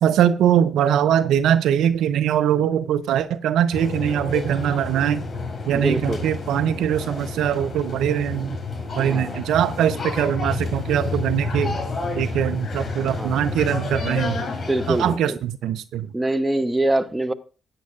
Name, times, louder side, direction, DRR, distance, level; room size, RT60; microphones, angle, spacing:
voice 1, 0.0-5.2 5.7-8.6 9.0-11.8 12.2-14.4 14.9-16.1, right 10 dB, 70° right, 0.5 m, -22 dB
sound 1, 3.7-15.1, left 3 dB, 35° left, 5.1 m, -30 dB
voice 2, 5.7-6.2 9.0-9.4 13.0-13.5 14.7-15.4 16.1-17.3, right 1 dB, 20° right, 1.0 m, -24 dB
15.5 x 9.3 x 2.5 m
hypercardioid pair, 45°, 0 cm